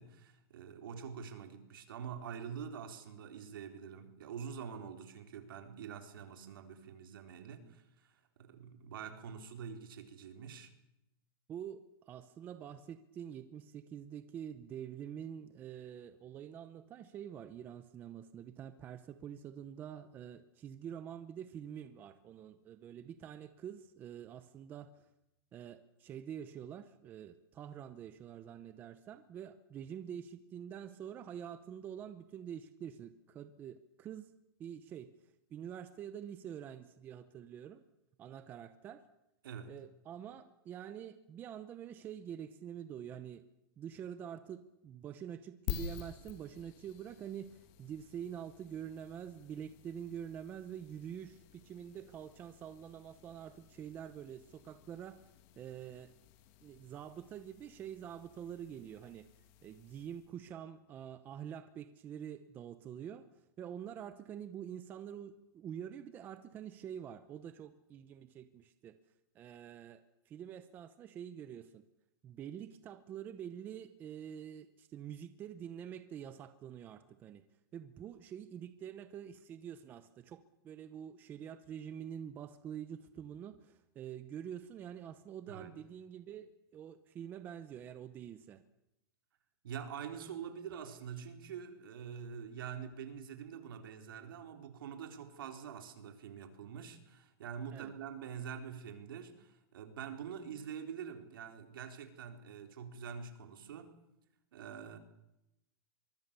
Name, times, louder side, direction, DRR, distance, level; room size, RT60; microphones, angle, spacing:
voice 1, 0.0-10.7 39.4-39.8 85.5-85.7 89.6-103.9 104.5-105.0, right 7 dB, 65° right, 6 dB, 4.2 m, -45 dB
voice 2, 11.5-25.0 25.5-34.3 34.6-35.1 35.5-37.8 38.2-39.0 39.7-43.4 43.8-55.2 55.6-56.1 56.6-59.3 59.6-63.3 63.6-69.0 69.3-71.8 72.2-77.4 77.7-88.6 97.7-97.9, right 9 dB, 15° right, 11 dB, 0.8 m, -46 dB
sound 1, 45.7-60.4, left 10 dB, 30° left, 1.6 m, -50 dB
24.0 x 23.5 x 6.9 m, 0.88 s
supercardioid pair, 175°, 13 cm